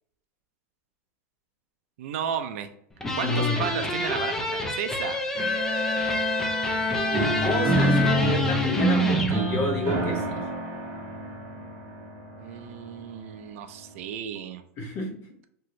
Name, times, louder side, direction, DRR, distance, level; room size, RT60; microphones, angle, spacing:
voice 1, 2.0-2.7 3.2-5.2 12.4-14.6, right 8 dB, 65° right, 8 dB, 0.4 m, -33 dB
sound 1, 3.0-9.4, left 1 dB, 5° left, 0.4 m, -29 dB
voice 2, 3.2-3.7 7.4-10.4 14.8-15.2, left 2 dB, 30° left, -1 dB, 0.8 m, -30 dB
Bowed string instrument, 5.3-9.1, left 2 dB, 45° left, 1.4 m, -29 dB
sound 2, 7.1-13.1, right 2 dB, 30° right, 0.9 m, -27 dB
2.8 x 2.6 x 3.1 m, 0.67 s
supercardioid pair, 165°, 8 cm